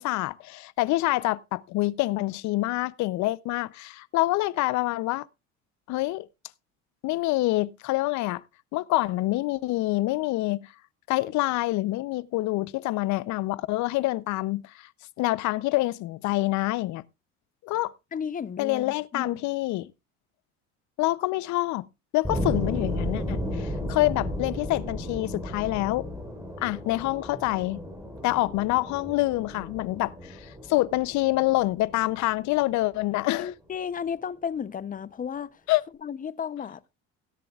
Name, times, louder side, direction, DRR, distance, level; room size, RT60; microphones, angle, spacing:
voice 1, 0.0-5.3 5.9-6.2 7.0-8.4 8.7-10.7 11.1-14.9 15.2-17.0 17.6-17.9 18.6-19.9 21.0-21.8 22.1-26.1 26.6-27.8 28.2-33.5 35.7-35.8, left 19 dB, 65° left, 0.6 m, -26 dB
voice 2, 18.1-19.4 33.4-35.6 36.0-36.8, left 7 dB, 25° left, 0.7 m, -33 dB
sound 1, 22.2-33.0, equal, 10° right, 4.0 m, -34 dB
17.0 x 10.5 x 2.4 m
supercardioid pair, 105°, 31 cm